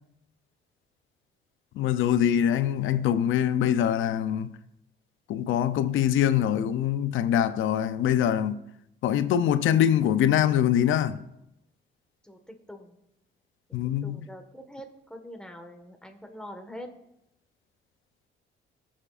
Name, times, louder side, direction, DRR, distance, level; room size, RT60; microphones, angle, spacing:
voice 1, 1.7-4.6 5.3-8.6 9.0-11.2 13.7-14.2, left 10 dB, 80° left, 0.6 m, -24 dB
voice 2, 12.2-13.0 13.8-16.9, equal, 5° left, 1.5 m, -44 dB
18.5 x 7.3 x 2.5 m
cardioid pair, 90°, 20 cm